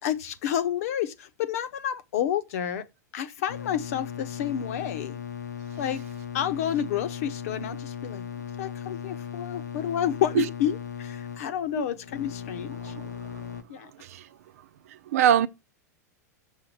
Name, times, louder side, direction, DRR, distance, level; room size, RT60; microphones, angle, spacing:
voice 1, 0.0-2.9 3.1-5.2 5.8-6.0 6.3-8.3 8.6-12.9 13.7-13.9, left 10 dB, 60° left, 1.1 m, -30 dB
sound 1, 3.5-13.6, left 8 dB, 75° left, 1.1 m, -38 dB
voice 2, 12.8-13.4 14.0-14.2 15.1-15.5, right 10 dB, 60° right, 0.8 m, -24 dB
7.5 x 6.7 x 8.0 m
figure-of-eight pair, 90°, 9 cm